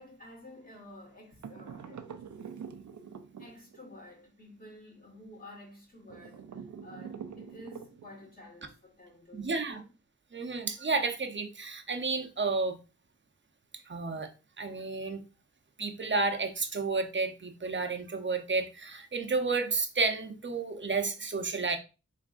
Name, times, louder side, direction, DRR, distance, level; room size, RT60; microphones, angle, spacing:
voice 1, 0.0-2.1 3.4-9.9, left 1 dB, 30° left, 1.7 m, -51 dB
sound 1, 1.4-4.0 6.1-8.3, right 7 dB, 75° right, 0.5 m, -45 dB
voice 2, 9.3-9.8 10.3-12.8 13.9-14.3 14.6-15.2 15.8-21.8, right 4 dB, 40° right, 0.7 m, -31 dB
4.0 x 3.6 x 2.5 m
wide cardioid pair, 75°, 29 cm